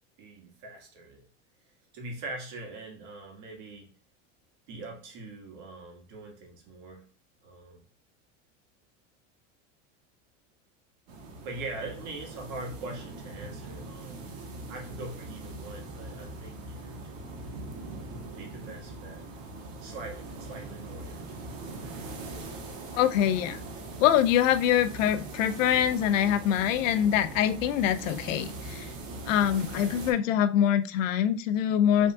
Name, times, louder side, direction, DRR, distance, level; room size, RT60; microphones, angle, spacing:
voice 1, 0.2-1.3 1.9-4.0 4.7-7.1 7.4-7.8 11.4-14.4 14.7-17.4 18.2-19.3 19.8-21.5, right 2 dB, 50° right, 1 dB, 1.9 m, -42 dB
sound 1, 11.1-30.1, right 2 dB, 80° right, 1.5 m, -41 dB
voice 2, 22.9-23.6 24.0-28.9 29.3-32.1, left 10 dB, 90° left, 11 dB, 0.7 m, -24 dB
6.1 x 3.6 x 2.4 m, 0.39 s
supercardioid pair, 150°, 38 cm